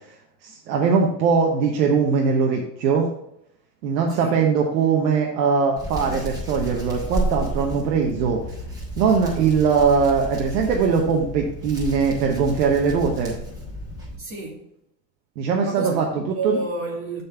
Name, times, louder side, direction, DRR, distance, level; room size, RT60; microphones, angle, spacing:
voice 1, 0.4-3.1 3.8-8.4 9.0-13.3 15.4-16.6, right 5 dB, 85° right, 0 dB, 1.1 m, -21 dB
voice 2, 4.1-4.4 14.2-14.6 15.6-17.2, right 2 dB, 25° right, -2 dB, 2.2 m, -30 dB
Hands, 5.8-14.2, right 1 dB, 5° right, 2.6 m, -32 dB
6.7 x 4.4 x 5.5 m, 0.76 s
supercardioid pair, 100°, 48 cm